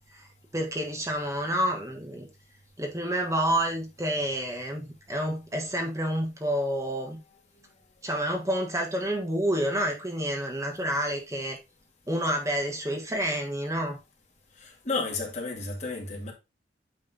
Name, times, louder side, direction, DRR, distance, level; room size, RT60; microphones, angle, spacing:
voice 1, 0.5-2.3 2.8-7.2 8.0-11.6 12.1-14.0, right 1 dB, 15° right, 1.3 m, -29 dB
voice 2, 14.6-16.3, left 3 dB, 40° left, 2.0 m, -32 dB
9.0 x 3.4 x 4.0 m
head